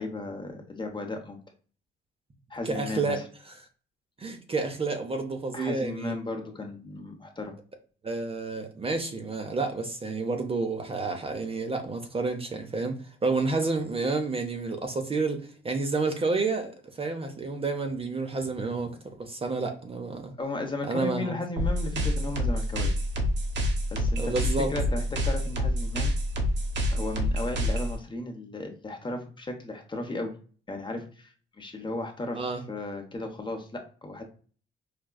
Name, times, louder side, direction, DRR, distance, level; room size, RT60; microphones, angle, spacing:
voice 1, 0.0-1.4 2.5-3.2 5.5-7.5 20.4-22.9 23.9-26.1 26.9-30.3 30.7-32.4 32.7-34.2, left 2 dB, 25° left, 0.8 m, -35 dB
voice 2, 2.6-3.2 4.2-6.2 8.0-20.3 20.9-21.4 24.2-24.7 32.3-32.6, right 3 dB, 30° right, 0.6 m, -30 dB
sound 1, 21.6-28.0, equal, 60° right, 1.0 m, -27 dB
4.8 x 2.3 x 2.2 m
cardioid pair, 90°, 20 cm